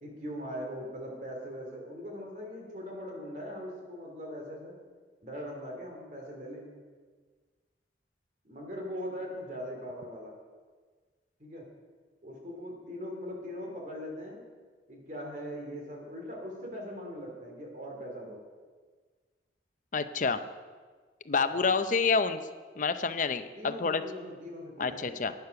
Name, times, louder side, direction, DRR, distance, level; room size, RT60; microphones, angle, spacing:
voice 1, 0.0-4.7 5.2-6.8 8.4-10.3 11.4-11.6 12.2-14.4 14.9-18.4 21.5-21.8 23.6-25.1, equal, 45° right, 1 dB, 2.6 m, -40 dB
voice 2, 19.9-20.4 21.3-22.4 22.8-24.0 24.8-25.3, left 4 dB, 45° left, 10 dB, 0.6 m, -28 dB
11.5 x 9.6 x 5.8 m, 1.5 s
head